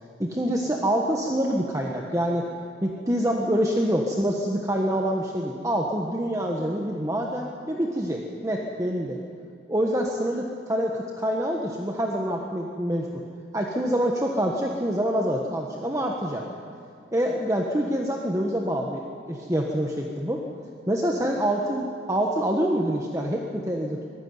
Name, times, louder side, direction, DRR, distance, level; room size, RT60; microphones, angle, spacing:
voice 1, 0.2-2.5 2.8-9.2 9.7-13.2 13.5-16.4 17.1-20.4 20.9-24.0, equal, 15° right, 0 dB, 1.3 m, -26 dB
24.0 x 15.5 x 9.6 m, 2.3 s
head